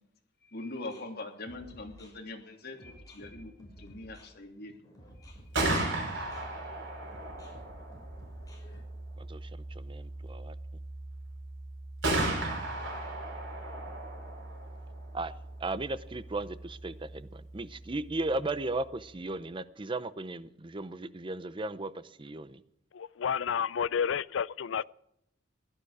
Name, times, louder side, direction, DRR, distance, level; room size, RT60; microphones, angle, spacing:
voice 1, 0.5-4.7, left 2 dB, 55° left, 2.9 m, -42 dB
sound 1, 0.7-8.8, equal, 20° left, 5.8 m, -53 dB
Gunshot gunfire, 5.3-19.1, right 2 dB, 75° right, 5.6 m, -37 dB
voice 2, 9.2-10.5 15.1-15.3 15.6-22.6, right 2 dB, 25° right, 0.6 m, -36 dB
voice 3, 22.9-24.8, left 7 dB, 75° left, 0.4 m, -30 dB
16.0 x 12.0 x 4.8 m
head